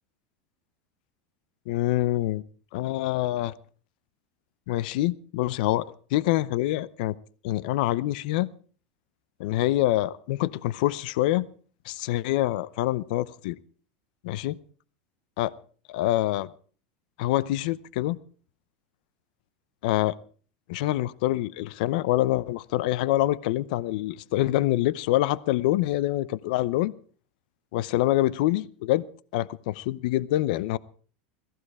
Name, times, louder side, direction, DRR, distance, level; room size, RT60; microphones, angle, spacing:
voice 1, 1.7-2.4 2.7-3.5 4.7-5.9 6.1-7.2 7.4-8.5 9.4-11.5 11.8-13.6 14.2-14.6 15.4-15.5 15.9-16.5 17.2-18.2 19.8-20.1 20.7-26.9 27.7-29.0 29.3-30.8, left 15 dB, 65° left, 0.7 m, -25 dB
17.0 x 15.0 x 4.9 m
supercardioid pair, 155°, 5 cm